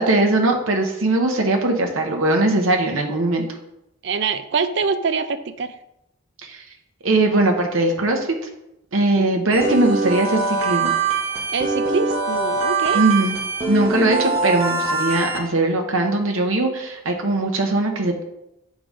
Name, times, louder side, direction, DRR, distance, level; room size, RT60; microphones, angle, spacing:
voice 1, 0.0-3.5 6.4-6.6 7.0-8.3 8.9-10.9 12.9-13.4 13.7-18.2, right 2 dB, 85° right, 3 dB, 1.0 m, -20 dB
voice 2, 4.0-5.7 9.2-9.4 11.5-13.0, right 5 dB, 60° right, 11 dB, 0.4 m, -25 dB
sound 1, 9.5-15.4, right 3 dB, 30° right, 1.5 m, -23 dB
6.7 x 3.9 x 4.9 m, 0.84 s
head